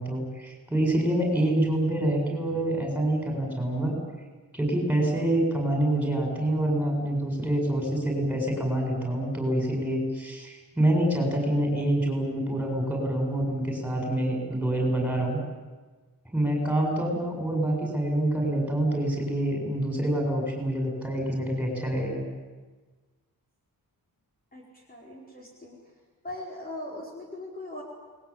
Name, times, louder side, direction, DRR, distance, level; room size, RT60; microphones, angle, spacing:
voice 1, 0.0-3.9 4.5-15.4 16.3-22.2, right 1 dB, 5° right, 1 dB, 7.5 m, -26 dB
voice 2, 24.5-25.8 26.2-27.8, left 1 dB, 25° left, -3 dB, 4.9 m, -40 dB
29.0 x 21.0 x 8.9 m, 1.3 s
wide cardioid pair, 165°, 35 cm